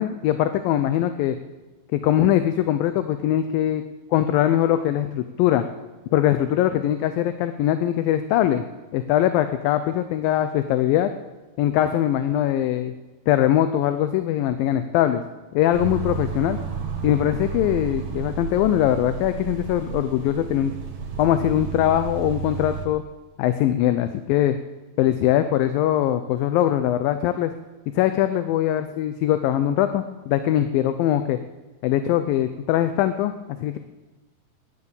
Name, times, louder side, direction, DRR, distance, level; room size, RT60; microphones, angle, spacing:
voice 1, 0.0-1.4 1.9-3.8 4.1-5.7 6.1-8.6 8.9-11.1 11.6-12.9 13.3-15.2 15.5-16.6 17.0-20.7 21.2-23.0 23.4-24.6 25.0-27.5 27.9-31.4 31.8-33.3 33.6-33.8, left 12 dB, 80° left, 10 dB, 2.3 m, -21 dB
sound 1, 15.7-22.9, right 6 dB, 60° right, 4.3 m, -32 dB
19.0 x 11.0 x 7.0 m, 1.2 s
omnidirectional pair, 4.4 m